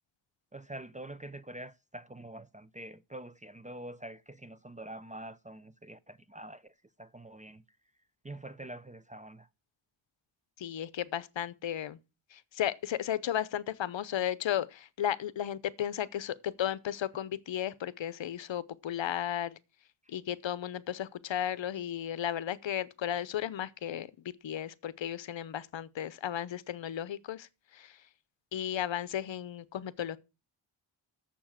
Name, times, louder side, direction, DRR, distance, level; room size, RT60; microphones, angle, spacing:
voice 1, 0.5-7.6 8.2-9.5, right 1 dB, 15° right, 0.4 m, -45 dB
voice 2, 10.6-12.0 12.3-19.6 20.1-28.0 28.5-30.2, left 10 dB, 65° left, 0.8 m, -34 dB
7.2 x 7.0 x 7.3 m
wide cardioid pair, 100°, 48 cm